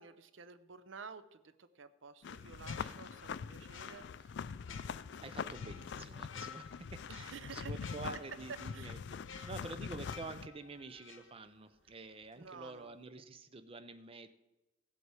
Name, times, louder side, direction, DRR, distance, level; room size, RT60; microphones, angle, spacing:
voice 1, 0.0-4.5 5.1-5.5 7.1-9.0 9.3-9.5 12.4-12.9, right 5 dB, 70° right, 13 dB, 0.7 m, -52 dB
sound 1, 2.2-10.5, left 6 dB, 60° left, 0.4 m, -44 dB
sound 2, 2.5-11.9 12.2-12.4, left 7 dB, 85° left, 1.0 m, -54 dB
voice 2, 5.2-14.3, right 3 dB, 30° right, 10 dB, 0.6 m, -48 dB
16.0 x 8.1 x 4.8 m, 1.0 s
head